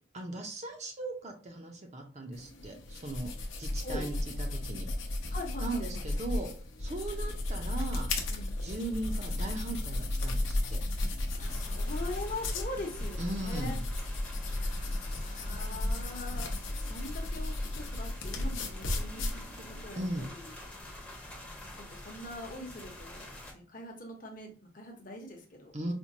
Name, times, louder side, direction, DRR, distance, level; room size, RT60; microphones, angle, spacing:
voice 1, 0.1-3.3 3.6-4.9 5.6-6.5 6.8-8.1 8.6-10.8 13.2-13.8 20.0-20.2 25.7-25.9, right 2 dB, 35° right, 3 dB, 0.6 m, -38 dB
sound 1, 2.3-19.8, left 1 dB, 70° left, 0.7 m, -34 dB
voice 2, 3.8-4.1 5.3-6.1 8.3-8.5 10.9-13.8 14.5-20.5 21.3-23.3 23.5-25.7, left 2 dB, 40° left, 1 dB, 0.8 m, -43 dB
sound 2, 11.5-23.5, left 1 dB, 5° left, 0.7 m, -47 dB
4.3 x 2.2 x 2.7 m, 0.41 s
head